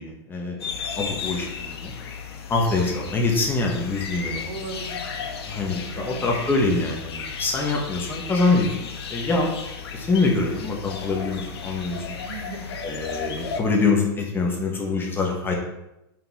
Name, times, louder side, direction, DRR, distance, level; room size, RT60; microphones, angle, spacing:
voice 1, 0.0-1.9 2.5-4.5 5.5-9.5 9.9-12.0 12.8-15.5, left 3 dB, 15° left, 0 dB, 1.5 m, -24 dB
sound 1, 0.6-13.6, left 6 dB, 80° left, 1.4 m, -34 dB
voice 2, 4.3-6.4 12.2-12.8, right 4 dB, 85° right, 3 dB, 1.8 m, -39 dB
5.7 x 5.5 x 5.6 m, 0.90 s
supercardioid pair, 145°, 13 cm